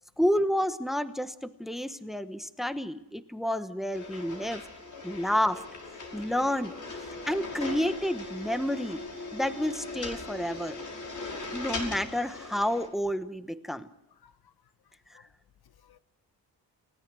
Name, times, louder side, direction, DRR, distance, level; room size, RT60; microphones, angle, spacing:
voice 1, 0.2-4.6 5.0-5.6 6.1-6.7 7.3-9.0 9.3-10.8 11.5-13.9, equal, ahead, 1.1 m, -30 dB
sound 1, 3.9-12.9, left 3 dB, 45° left, 5.6 m, -39 dB
voice 2, 14.2-14.5 15.1-15.3 15.6-16.0, left 8 dB, 60° left, 1.1 m, -60 dB
29.5 x 17.5 x 6.2 m
wide cardioid pair, 140°, 41 cm